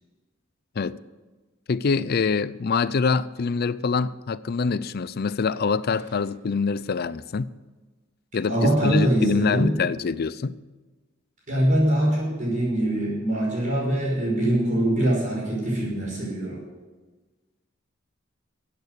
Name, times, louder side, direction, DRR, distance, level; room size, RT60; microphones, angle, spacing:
voice 1, 1.7-7.5 8.3-10.6, left 5 dB, 50° left, 0.5 m, -25 dB
voice 2, 8.5-9.8 11.5-16.6, right 1 dB, 40° right, 5.3 m, -23 dB
15.0 x 8.9 x 6.5 m
head